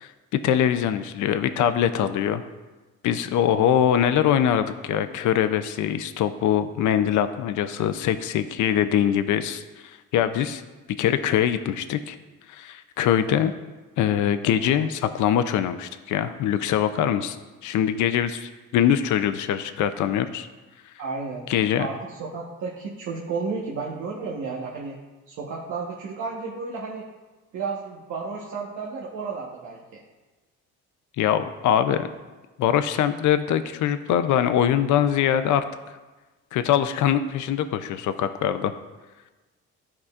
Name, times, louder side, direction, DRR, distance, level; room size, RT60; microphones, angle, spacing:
voice 1, 0.0-2.4 3.0-10.6 11.0-12.2 12.5-13.5 14.0-17.4 17.6-20.5 21.5-21.8 31.2-32.1 32.6-35.6 36.5-38.7, left 9 dB, 75° left, 10 dB, 0.5 m, -23 dB
voice 2, 21.0-21.4 21.8-25.0 25.3-27.0 27.5-30.0, right 4 dB, 80° right, -4 dB, 1.2 m, -32 dB
13.0 x 4.9 x 2.4 m, 1.2 s
cardioid pair, 90°, 30 cm